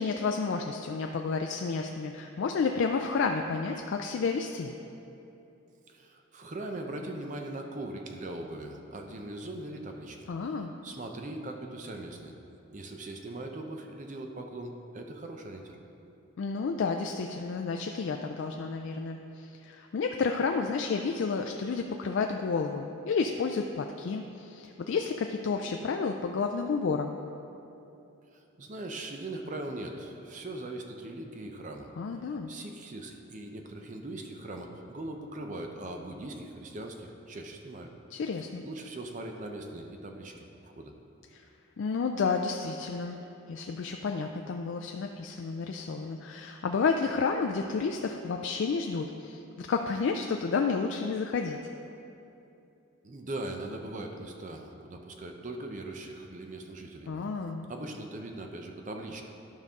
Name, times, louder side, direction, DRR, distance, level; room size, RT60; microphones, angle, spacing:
voice 1, 0.0-4.8 10.3-10.7 16.4-27.2 32.0-32.5 38.1-38.6 41.3-41.4 41.8-43.2 43.5-51.6 57.1-57.7, left 4 dB, 60° left, 4 dB, 0.3 m, -31 dB
voice 2, 5.9-10.3 10.8-12.3 12.7-15.8 28.3-31.9 32.5-37.9 38.6-40.9 53.0-57.1 57.7-59.2, right 2 dB, 35° right, 3 dB, 0.6 m, -40 dB
11.5 x 5.3 x 3.6 m, 2.8 s
head